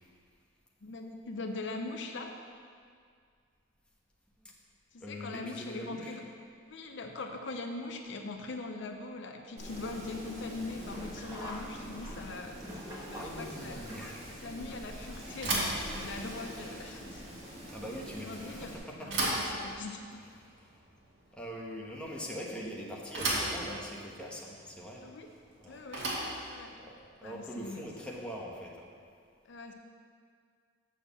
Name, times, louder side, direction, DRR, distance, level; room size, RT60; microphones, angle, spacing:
voice 1, 0.8-2.3 4.9-6.2 6.7-12.6 13.1-13.9 14.4-17.2 18.2-18.7 19.0-20.2 25.0-25.3 25.7-26.0 26.5-26.7 27.2-27.9 29.4-29.7, left 3 dB, 65° left, 4 dB, 0.6 m, -41 dB
voice 2, 5.0-6.2 13.1-14.5 17.4-19.3 20.4-20.8 21.3-25.1 25.6-25.8 26.8-26.9 27.2-28.9, equal, 5° left, -3 dB, 1.1 m, -43 dB
Wind, 9.6-18.7, equal, 35° right, 2.2 m, -45 dB
Sink (filling or washing), 10.8-15.7 16.1-16.2 17.2-17.3 17.6-17.7, equal, 15° right, 1.4 m, -47 dB
Bicycle / Thump thud, 15.3-28.5, right 1 dB, 65° right, 2.0 m, -37 dB
7.0 x 6.4 x 6.9 m, 2.1 s
head